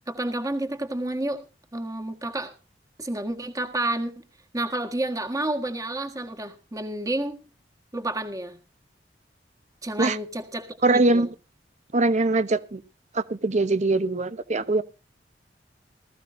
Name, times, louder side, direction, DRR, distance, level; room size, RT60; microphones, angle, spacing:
voice 1, 0.1-1.4 1.7-2.5 3.0-4.2 4.5-7.4 7.9-8.6 9.8-11.3, right 1 dB, 20° right, 6 dB, 1.6 m, -30 dB
voice 2, 10.8-11.3 11.9-12.8 13.1-14.8, right 2 dB, 40° right, 13 dB, 0.9 m, -22 dB
19.5 x 14.5 x 2.6 m, 0.32 s
head